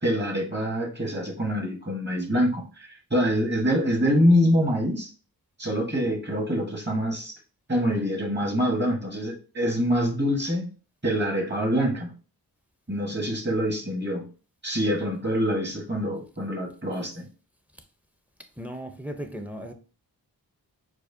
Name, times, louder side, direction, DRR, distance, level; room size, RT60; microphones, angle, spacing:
voice 1, 0.0-5.1 5.6-7.3 7.7-10.7 11.0-12.1 12.9-14.3 14.6-17.3, equal, 25° right, 1.2 m, -25 dB
voice 2, 18.6-19.7, equal, 5° right, 0.6 m, -36 dB
4.7 x 2.1 x 2.6 m
cardioid pair, 45°, 39 cm